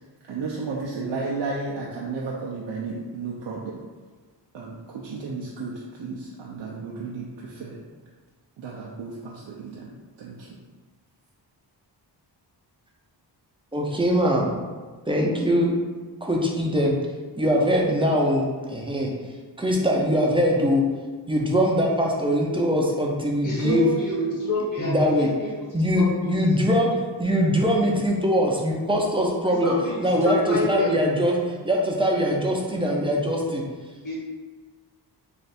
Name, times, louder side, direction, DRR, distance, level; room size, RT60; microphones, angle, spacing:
voice 1, 0.3-3.8 4.5-5.7 6.0-7.8 8.6-9.9 10.2-10.6, right 4 dB, 80° right, -4 dB, 0.6 m, -33 dB
voice 2, 13.7-14.6 15.1-15.8 16.2-17.0 17.4-19.1 19.6-20.8 21.3-23.9 24.8-25.3 25.7-26.9 27.2-29.7 30.0-33.6, equal, 10° right, -2 dB, 0.5 m, -22 dB
voice 3, 23.4-25.4 25.8-26.3 29.5-31.0 34.0-34.1, left 1 dB, 45° left, -6 dB, 1.3 m, -28 dB
3.3 x 2.5 x 4.0 m, 1.4 s
wide cardioid pair, 130°, 43 cm